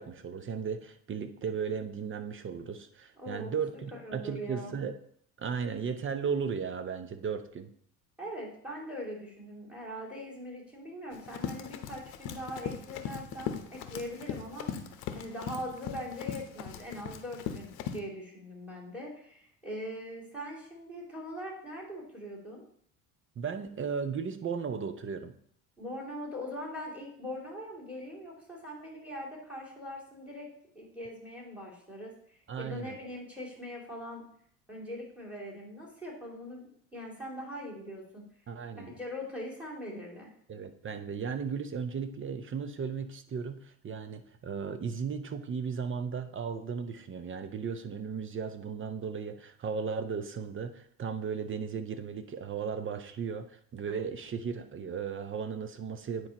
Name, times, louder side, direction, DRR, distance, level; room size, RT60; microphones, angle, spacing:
voice 1, 0.0-5.0 5.4-7.7 23.4-25.4 32.5-33.0 38.5-38.9 40.5-56.3, right 6 dB, 25° right, 10 dB, 0.7 m, -36 dB
voice 2, 3.2-4.8 8.2-14.7 15.1-22.6 25.8-30.5 30.7-32.1 32.6-34.2 34.7-38.2 38.8-40.3, equal, 5° right, -2 dB, 2.6 m, -41 dB
Run, 11.1-18.0, left 8 dB, 55° left, 0.9 m, -39 dB
9.6 x 4.6 x 2.9 m, 0.64 s
hypercardioid pair, 70°, 46 cm